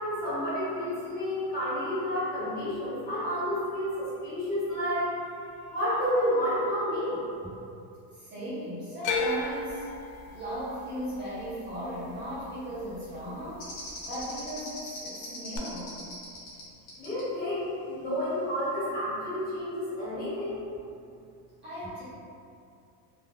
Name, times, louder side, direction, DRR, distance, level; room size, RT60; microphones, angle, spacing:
voice 1, 0.0-5.1 5.7-7.2 17.0-20.6, equal, 20° left, -12 dB, 0.8 m, -30 dB
voice 2, 8.1-9.9 10.3-13.6 14.0-16.0 21.6-22.0, equal, 25° right, -13 dB, 0.7 m, -37 dB
sound 1, 9.0-13.2 13.5-14.2 15.5-15.6, left 3 dB, 85° left, 0.5 m, -34 dB
sound 2, 13.6-16.6 16.9-17.2, left 2 dB, 60° left, 1.1 m, -40 dB
3.3 x 2.0 x 2.4 m, 2.5 s
cardioid pair, 170°, 42 cm